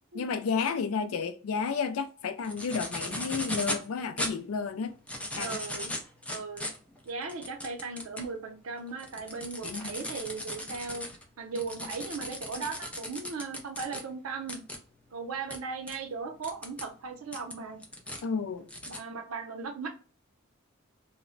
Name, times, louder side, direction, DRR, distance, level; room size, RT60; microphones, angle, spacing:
voice 1, 0.1-4.9 5.4-5.6 9.6-9.9 18.2-18.7, left 5 dB, 75° left, 0.4 m, -31 dB
sound 1, 2.4-3.9 4.2-4.3 4.9-8.3 8.8-14.0 14.5-14.8 15.5-15.6 15.9-16.0 16.4-16.9 17.3-18.2 18.7-19.0, left 1 dB, 5° left, 0.4 m, -37 dB
voice 2, 5.4-5.9 6.3-6.7 7.1-11.1 11.4-14.6 15.1-17.8 18.8-19.9, right 4 dB, 80° right, 0.6 m, -37 dB
2.1 x 2.0 x 3.7 m
head